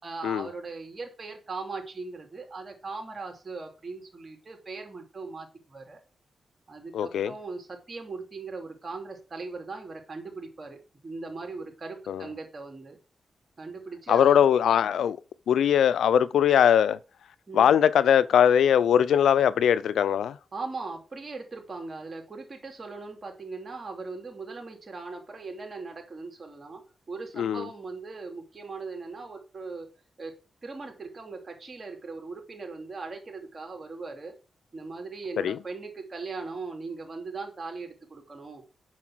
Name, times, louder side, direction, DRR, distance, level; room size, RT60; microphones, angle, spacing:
voice 1, 0.0-6.0 6.7-13.0 13.6-14.3 14.9-15.0 17.5-17.7 20.5-26.8 27.1-29.9 30.2-30.3 30.6-34.3 34.7-38.6, right 3 dB, 45° right, 2.8 m, -39 dB
voice 2, 6.9-7.3 12.1-12.2 14.1-15.2 15.5-17.0 17.5-20.4 27.4-27.7 35.4-35.6, left 9 dB, 80° left, 0.5 m, -21 dB
7.4 x 5.7 x 6.2 m
supercardioid pair, 50°, 0 cm